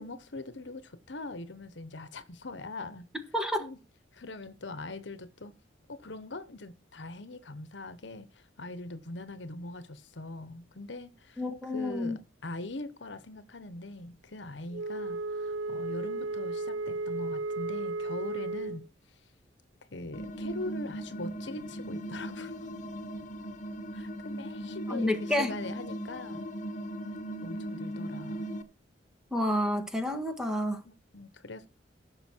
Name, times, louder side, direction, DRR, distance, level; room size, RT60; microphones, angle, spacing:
voice 1, 0.0-3.1 3.6-3.8 4.1-5.5 5.9-18.9 19.9-22.7 23.9-26.4 27.4-28.5 30.8-31.7, left 2 dB, 70° left, 1.1 m, -42 dB
voice 2, 3.3-3.7 11.4-12.2 24.9-25.5 29.3-30.8, left 1 dB, 5° right, 1.6 m, -29 dB
Wind instrument woodwind instrument, 14.7-18.9, right 3 dB, 85° right, 0.5 m, -34 dB
sound 1, 20.1-28.6, right 1 dB, 40° left, 0.9 m, -38 dB
15.5 x 6.5 x 4.5 m
head